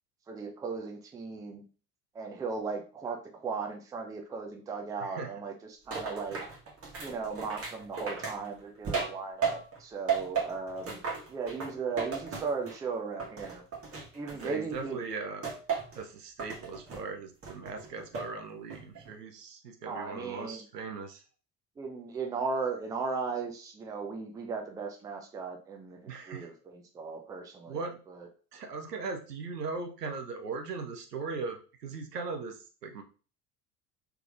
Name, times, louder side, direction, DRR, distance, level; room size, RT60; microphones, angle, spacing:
voice 1, 0.3-1.6 2.1-6.4 7.0-11.0 11.3-13.6 14.1-15.0 19.8-20.6 21.8-27.8 28.1-28.3, right 4 dB, 10° right, 3 dB, 0.4 m, -37 dB
voice 2, 5.0-5.3 14.4-15.5 15.9-21.2 26.1-26.5 27.7-28.0 28.5-33.0, right 4 dB, 80° right, 5 dB, 0.7 m, -39 dB
sound 1, 5.9-9.8 10.1-12.9 13.2-14.8 15.4-16.0 16.4-17.0 17.4-18.3 18.7-19.1, right 5 dB, 30° right, 1.3 m, -35 dB
3.4 x 3.4 x 2.4 m, 0.38 s
figure-of-eight pair, 65°, 47 cm